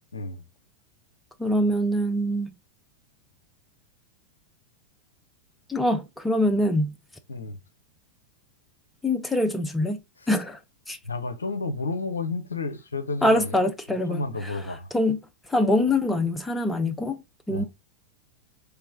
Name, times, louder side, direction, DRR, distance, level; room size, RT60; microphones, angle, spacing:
voice 1, 0.1-0.4 7.3-7.6 11.0-13.6 14.1-14.9 17.5-17.6, left 3 dB, 75° left, 0.5 m, -31 dB
voice 2, 1.4-2.5 5.7-6.9 9.0-10.0 10.3-10.6 10.9-11.0 13.2-14.6 14.9-15.2 15.5-17.6, left 1 dB, 5° left, 0.5 m, -24 dB
3.3 x 3.1 x 3.4 m
figure-of-eight pair, 90°, 0 cm